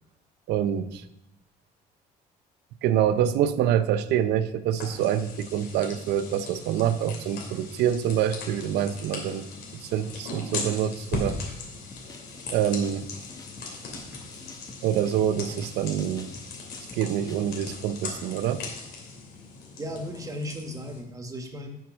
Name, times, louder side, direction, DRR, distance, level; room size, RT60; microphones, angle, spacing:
voice 1, 0.5-1.0 2.8-9.4 9.8-11.4 12.5-13.1 14.8-16.3 16.9-18.6, right 10 dB, 80° right, 13 dB, 0.6 m, -26 dB
sound 1, 4.7-21.0, left 3 dB, 75° left, 2.9 m, -39 dB
sound 2, 11.9-17.8, left 3 dB, 20° left, 0.9 m, -48 dB
voice 2, 19.8-21.8, equal, 20° right, 5 dB, 1.4 m, -36 dB
7.0 x 5.9 x 6.1 m, 0.85 s
cardioid pair, 110°, 17 cm